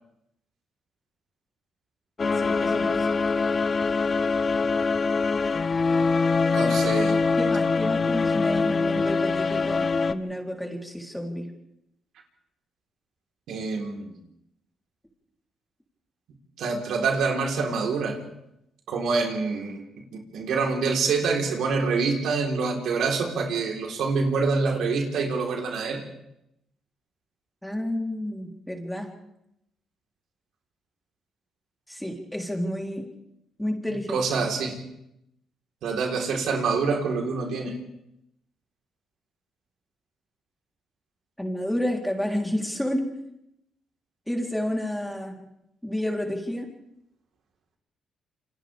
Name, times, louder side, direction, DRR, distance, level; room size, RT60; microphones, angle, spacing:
sound 1, 2.2-10.1, left 4 dB, 35° left, 0.9 m, -23 dB
voice 1, 2.4-3.2 7.4-11.5 27.6-29.1 31.9-33.1 33.6-34.2 41.4-43.1 44.3-45.4 45.8-46.7, left 1 dB, 5° left, 0 dB, 3.6 m, -30 dB
voice 2, 6.5-7.2 13.5-14.1 16.6-18.2 18.9-19.8 20.1-26.0 34.1-34.8 35.8-37.7, right 4 dB, 75° right, 0 dB, 4.0 m, -26 dB
28.0 x 27.0 x 3.6 m, 0.82 s
cardioid pair, 100°, 0 cm